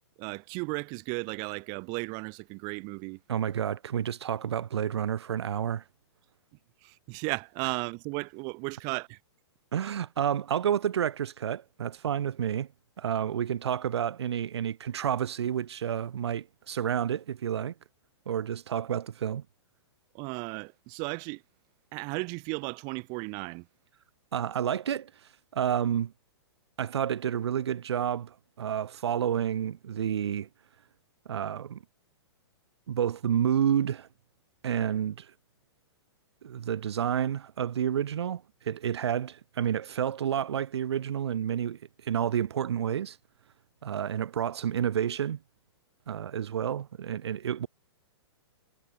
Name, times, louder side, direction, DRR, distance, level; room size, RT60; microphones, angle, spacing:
voice 1, 0.2-3.2 6.8-9.2 20.1-21.4 21.9-23.7, right 33 dB, 30° right, 4.3 m, -35 dB
voice 2, 3.3-5.8 9.7-12.7 13.0-17.7 18.3-19.4 24.3-25.1 25.5-26.1 26.8-30.5 31.3-31.8 32.9-34.1 34.6-35.3 36.4-43.2 43.8-45.4 46.1-47.7, right 9 dB, 70° right, 4.0 m, -30 dB
hypercardioid pair, 165°, 14 cm